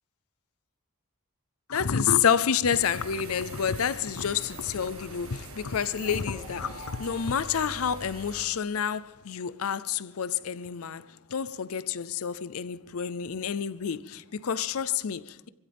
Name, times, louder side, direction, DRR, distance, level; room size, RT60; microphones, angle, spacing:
voice 1, 1.7-15.5, left 7 dB, 75° left, 0.5 m, -29 dB
sound 1, 2.7-8.5, right 3 dB, 65° right, 1.8 m, -44 dB
sound 2, 5.6-8.5, equal, 30° right, 1.9 m, -49 dB
25.5 x 16.0 x 3.5 m
head